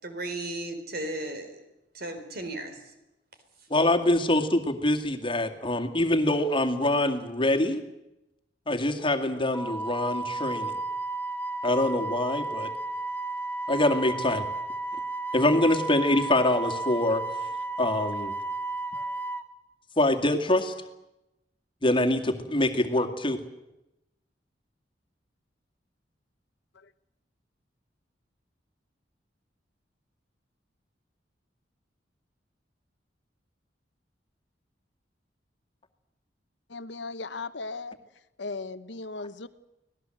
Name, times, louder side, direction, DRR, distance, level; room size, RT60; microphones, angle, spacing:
voice 1, 0.0-1.6 1.9-2.8, right 1 dB, 60° right, 4.1 m, -35 dB
voice 2, 3.7-7.8 8.7-10.7 11.6-12.7 13.7-14.4 15.3-17.2 17.8-18.3 20.0-20.7 21.8-23.4, left 1 dB, 30° left, 2.2 m, -24 dB
Wind instrument woodwind instrument, 9.5-19.4, right 2 dB, 10° left, 1.7 m, -33 dB
voice 3, 36.7-38.0 38.4-39.5, left 3 dB, 75° left, 1.0 m, -37 dB
25.0 x 18.5 x 7.8 m
head